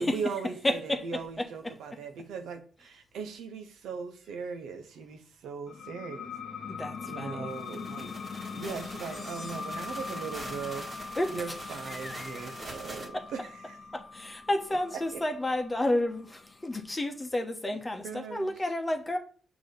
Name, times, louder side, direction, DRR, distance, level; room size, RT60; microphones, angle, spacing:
voice 1, 0.0-6.3 7.0-8.1 8.5-10.9 11.3-13.8 14.9-15.2 18.0-18.5, right 5 dB, 80° right, 0.9 m, -39 dB
voice 2, 0.6-1.0 1.4-1.7 6.7-7.5 11.2-11.3 11.9-12.5 13.1-13.2 13.9-19.2, left 1 dB, 20° left, 1.1 m, -31 dB
sound 1, 5.7-16.9, left 6 dB, 55° left, 0.6 m, -43 dB
sound 2, 7.5-13.1, right 1 dB, 40° right, 1.8 m, -44 dB
sound 3, 9.0-16.3, left 3 dB, 5° left, 1.0 m, -44 dB
6.3 x 3.0 x 5.1 m
cardioid pair, 65°, 0 cm